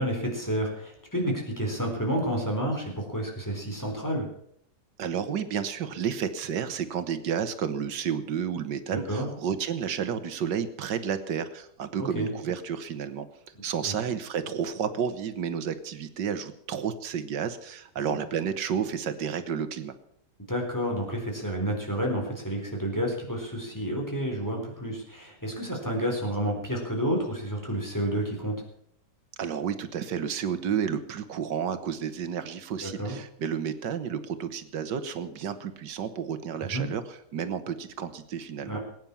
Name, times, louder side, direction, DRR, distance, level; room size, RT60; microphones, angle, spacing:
voice 1, 0.0-4.3 8.9-9.3 12.0-12.3 13.8-13.9 20.5-28.6 32.8-33.2 36.6-36.8 38.7-38.8, equal, 10° left, 0 dB, 4.1 m, -30 dB
voice 2, 5.0-13.3 13.6-19.9 29.4-38.8, right 7 dB, 85° right, 11 dB, 1.8 m, -31 dB
20.0 x 9.4 x 7.1 m, 0.71 s
omnidirectional pair, 1.8 m